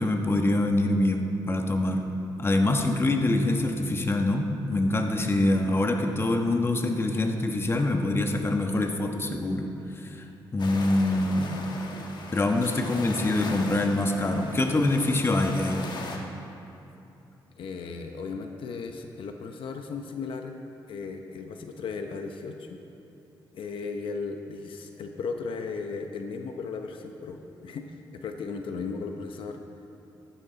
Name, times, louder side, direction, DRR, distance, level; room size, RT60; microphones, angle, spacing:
voice 1, 0.0-2.1 2.4-11.6 12.3-15.9, left 2 dB, 25° left, 3 dB, 1.2 m, -25 dB
sound 1, 10.6-16.2, left 3 dB, 55° left, 1.5 m, -39 dB
voice 2, 17.5-20.6 20.8-22.8 23.5-29.6, left 4 dB, 75° left, 5 dB, 0.8 m, -36 dB
15.0 x 11.5 x 4.0 m, 2.7 s
cardioid pair, 85°, 9 cm